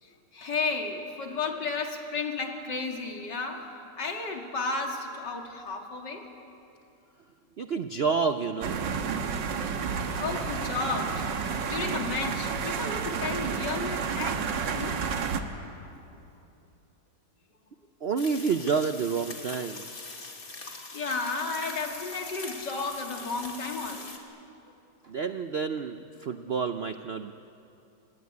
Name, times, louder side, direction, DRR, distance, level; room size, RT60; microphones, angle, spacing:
voice 1, 0.3-3.6 4.0-6.2 9.6-9.8 10.1-11.3 11.7-14.4 14.7-15.1 19.9-20.0 20.9-24.1, left 4 dB, 70° left, 2 dB, 3.0 m, -33 dB
voice 2, 7.6-8.8 18.0-19.8 25.0-27.3, right 5 dB, 60° right, 9 dB, 0.6 m, -29 dB
sound 1, 8.6-15.4, right 6 dB, 80° right, 2.0 m, -31 dB
sound 2, 18.2-24.2, left 3 dB, 50° left, 2.9 m, -42 dB
27.5 x 19.0 x 9.7 m, 2.7 s
omnidirectional pair, 1.9 m